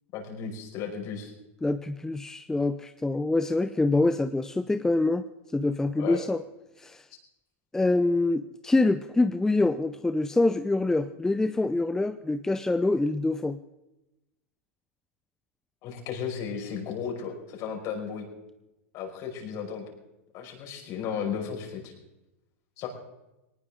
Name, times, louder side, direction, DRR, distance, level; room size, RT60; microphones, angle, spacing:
voice 1, 0.1-1.3 5.9-6.2 15.8-18.3 18.9-19.8 20.3-21.9 22.8-22.9, left 7 dB, 45° left, 1 dB, 5.3 m, -34 dB
voice 2, 1.6-5.3 5.5-6.4 6.8-7.0 7.7-13.6, left 2 dB, 5° left, 10 dB, 0.6 m, -25 dB
20.0 x 19.0 x 3.7 m, 0.96 s
hypercardioid pair, 120°, 8 cm